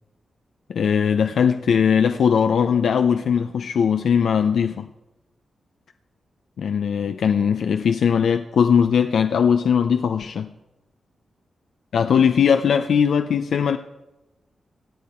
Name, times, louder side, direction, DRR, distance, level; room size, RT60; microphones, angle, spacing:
voice 1, 0.7-4.9 6.6-10.5 11.9-13.8, left 7 dB, 80° left, 0.6 m, -19 dB
24.5 x 8.3 x 4.4 m
cardioid pair, 85°, 0 cm